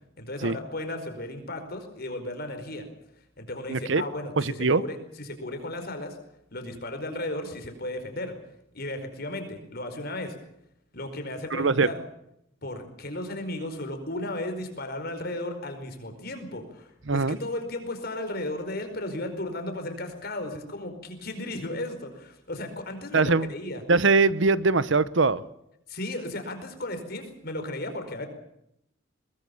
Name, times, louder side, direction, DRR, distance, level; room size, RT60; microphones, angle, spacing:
voice 1, 0.2-2.9 3.4-6.2 6.5-8.4 8.7-10.3 10.9-12.0 12.6-23.8 25.9-28.3, left 1 dB, 50° left, 7 dB, 4.9 m, -35 dB
voice 2, 3.7-4.0 4.4-4.8 11.5-11.9 17.1-17.4 23.1-23.5 23.9-25.4, right 4 dB, 65° right, 17 dB, 0.9 m, -22 dB
22.5 x 21.0 x 7.1 m, 0.78 s
head